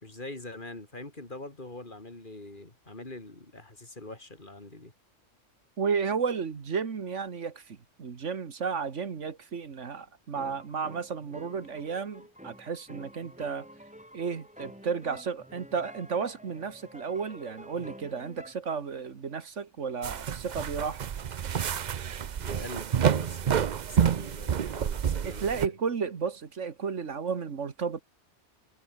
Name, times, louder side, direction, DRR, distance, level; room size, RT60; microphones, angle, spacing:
voice 1, 0.0-4.9 22.4-25.7, left 2 dB, 40° left, 3.3 m, -43 dB
voice 2, 5.8-13.7 14.1-21.1 25.2-28.0, right 6 dB, 75° right, 1.8 m, -33 dB
sound 1, 10.3-18.5, equal, 5° right, 6.6 m, -49 dB
sound 2, 20.0-25.7, right 8 dB, 45° right, 0.6 m, -29 dB
omnidirectional pair, 1.3 m